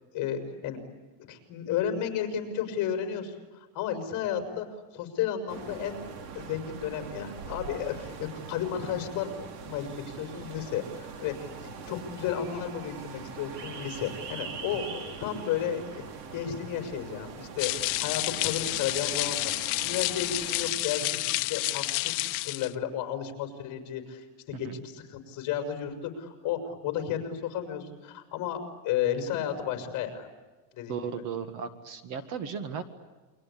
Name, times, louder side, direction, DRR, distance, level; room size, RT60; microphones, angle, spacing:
voice 1, 0.1-0.8 1.2-4.7 4.9-6.0 6.4-21.2 21.5-30.3 30.7-31.1, left 9 dB, 35° left, 5 dB, 5.4 m, -33 dB
sound 1, 5.5-20.7, right 5 dB, 80° right, 4.0 m, -42 dB
sound 2, 17.6-22.7, left 23 dB, 60° left, 1.0 m, -30 dB
voice 2, 30.9-32.8, right 6 dB, 40° right, 10 dB, 1.8 m, -35 dB
29.5 x 24.0 x 8.4 m, 1.2 s
cardioid pair, 175°, 47 cm